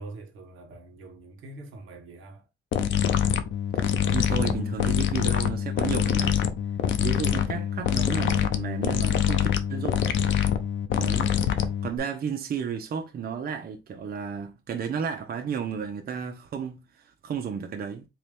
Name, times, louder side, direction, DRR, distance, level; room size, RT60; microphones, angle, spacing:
voice 1, 0.0-2.4, right 2 dB, 85° right, 1.3 m, -44 dB
sound 1, 2.7-12.0, left 9 dB, 70° left, 0.6 m, -25 dB
voice 2, 4.1-6.4 7.0-10.1 10.9-18.1, right 7 dB, 50° right, 0.7 m, -33 dB
4.0 x 2.9 x 3.3 m
cardioid pair, 90°, 20 cm